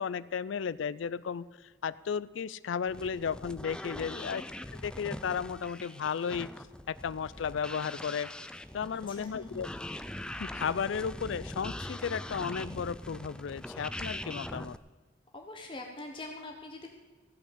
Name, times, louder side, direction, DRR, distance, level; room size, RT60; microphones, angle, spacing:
voice 1, 0.0-4.4 4.7-6.5 6.9-8.3 8.7-9.7 10.4-14.8, left 6 dB, 85° left, 17 dB, 0.4 m, -34 dB
sound 1, 2.9-14.8, left 1 dB, 5° left, 0.3 m, -42 dB
voice 2, 9.1-9.7 15.3-16.9, left 2 dB, 25° left, 2 dB, 1.0 m, -44 dB
15.5 x 6.2 x 8.5 m, 1.4 s
head